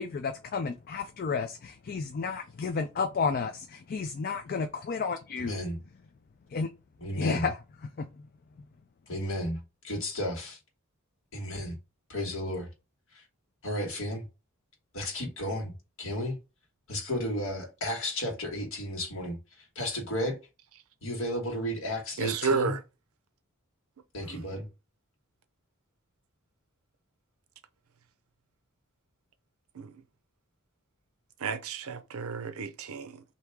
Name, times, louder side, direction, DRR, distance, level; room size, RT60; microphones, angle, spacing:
voice 1, 0.0-5.6 6.5-6.7 7.2-7.6 8.0-8.1, left 5 dB, 45° left, 0.4 m, -31 dB
voice 2, 5.4-5.8 7.0-7.5 9.1-10.6 11.3-11.7 12.1-12.7 13.1-13.2 13.6-14.3 14.9-15.7 16.0-16.4 16.9-19.4 19.7-20.4 21.0-22.8 24.1-24.7, left 1 dB, 60° left, 1.6 m, -33 dB
voice 3, 22.2-22.8 24.2-24.5 29.8-29.9 31.4-33.2, right 5 dB, 75° right, 0.6 m, -31 dB
3.5 x 2.8 x 4.5 m
head